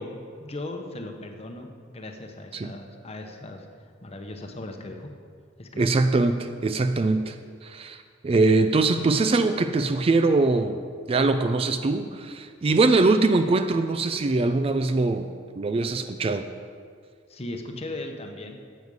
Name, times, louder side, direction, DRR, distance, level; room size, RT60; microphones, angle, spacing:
voice 1, 0.0-3.7 4.0-5.1 5.6-6.0 17.3-18.6, left 2 dB, 30° left, 4 dB, 0.9 m, -38 dB
voice 2, 5.8-7.4 7.6-10.8 11.1-15.3 15.6-16.4, right 3 dB, 30° right, 9 dB, 0.3 m, -22 dB
9.7 x 8.0 x 5.4 m, 2.1 s
head